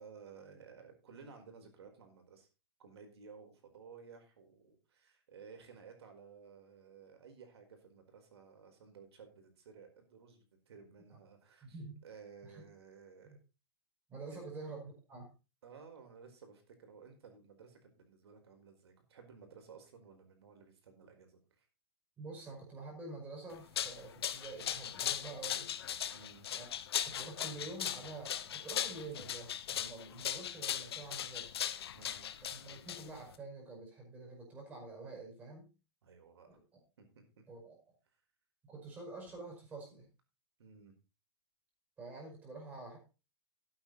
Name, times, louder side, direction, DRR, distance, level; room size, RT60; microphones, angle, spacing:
voice 1, 0.0-2.5 2.8-13.4 14.3-14.5 15.6-21.7 26.1-26.5 31.9-32.3 36.0-36.6 37.0-37.4 40.6-40.9, right 5 dB, 75° right, 5 dB, 4.7 m, -56 dB
voice 2, 11.6-12.0 12.4-12.6 13.2-13.4 14.1-15.3 22.2-25.7 26.5-26.7 27.1-31.5 32.5-35.7 37.5-37.8 38.6-40.1 42.0-43.0, right 3 dB, 10° right, 0 dB, 5.3 m, -47 dB
sound 1, 23.5-33.4, left 10 dB, 70° left, 1.1 m, -38 dB
13.0 x 8.8 x 4.1 m, 0.31 s
hypercardioid pair, 170°, 14 cm